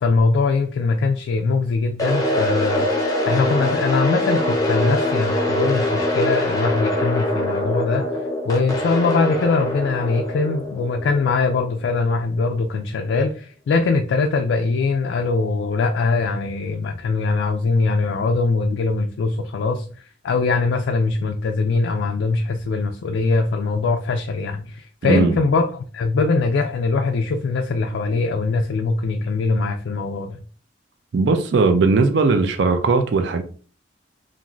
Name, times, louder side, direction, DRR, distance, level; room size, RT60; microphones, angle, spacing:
voice 1, 0.0-2.9 3.3-8.0 8.4-30.4, left 3 dB, 75° left, 0.3 m, -22 dB
sound 1, 2.0-12.0, left 1 dB, 20° left, 0.5 m, -23 dB
voice 2, 25.0-25.3 31.1-33.4, right 4 dB, 65° right, 0.4 m, -18 dB
2.5 x 2.4 x 3.0 m
head